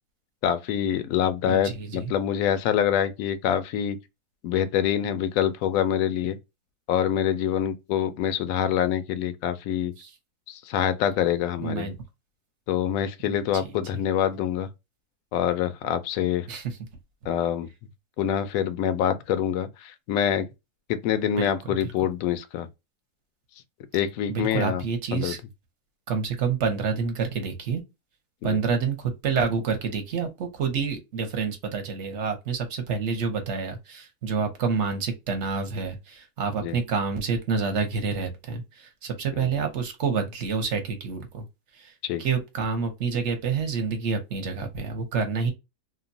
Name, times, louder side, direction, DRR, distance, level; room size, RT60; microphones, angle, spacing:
voice 1, 0.4-4.0 4.4-6.4 6.9-9.9 10.5-11.9 12.7-14.7 15.3-16.5 17.3-17.7 18.2-20.5 20.9-22.7 23.9-24.8 25.1-25.3 28.4-28.6 36.6-36.8 39.3-39.5 42.0-42.2, left 9 dB, 70° left, 0.9 m, -25 dB
voice 2, 1.5-2.1 10.0-10.1 11.6-12.0 13.2-13.7 16.5-16.8 21.2-21.9 24.3-25.4 26.1-27.8 28.4-41.5 41.8-41.9 42.2-45.5, right 5 dB, 55° right, 1.0 m, -28 dB
2.9 x 2.2 x 2.5 m
omnidirectional pair, 1.6 m